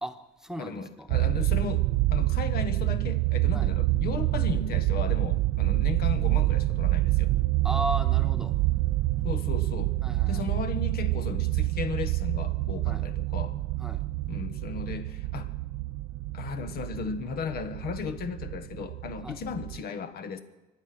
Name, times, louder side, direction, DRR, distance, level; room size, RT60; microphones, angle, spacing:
voice 1, 0.0-1.1 3.5-3.7 7.6-8.6 10.0-10.5 12.8-13.0 13.8-14.0 19.2-19.4, equal, 5° right, 6 dB, 1.2 m, -35 dB
voice 2, 0.6-7.3 9.2-9.9 10.3-13.6 14.3-15.6 16.3-20.4, left 6 dB, 65° left, 10 dB, 1.3 m, -35 dB
sound 1, 1.1-19.8, right 18 dB, 85° right, 0.5 m, -27 dB
24.5 x 9.8 x 6.1 m, 1.1 s
cardioid pair, 110°, 17 cm